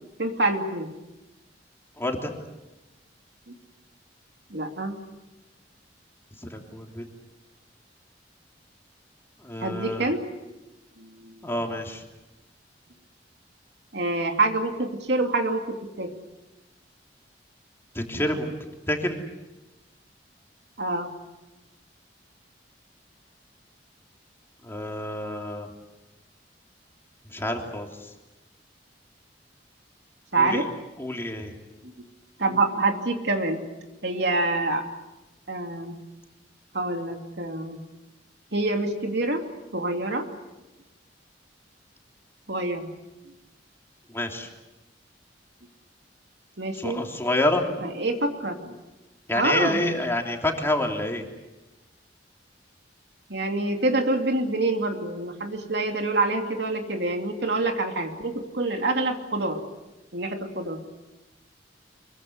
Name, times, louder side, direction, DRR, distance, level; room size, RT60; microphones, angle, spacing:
voice 1, 0.2-0.9 4.5-4.9 9.6-10.2 11.0-11.3 13.9-16.1 20.8-21.1 30.3-30.7 32.4-33.6 34.0-34.9 35.5-36.0 36.7-37.8 38.5-39.4 39.7-40.3 42.5-42.9 46.6-47.0 47.8-48.7 49.3-49.8 53.3-59.6 60.1-60.8, right 2 dB, 65° right, 4 dB, 2.8 m, -26 dB
voice 2, 2.0-2.3 6.4-7.0 9.4-10.1 11.4-12.0 17.9-18.5 18.9-19.2 24.6-25.7 27.3-28.1 30.4-30.7 31.0-31.6 44.1-44.5 46.7-47.7 49.3-51.2, left 1 dB, 15° left, 2 dB, 3.2 m, -28 dB
25.5 x 22.5 x 8.1 m, 1.0 s
head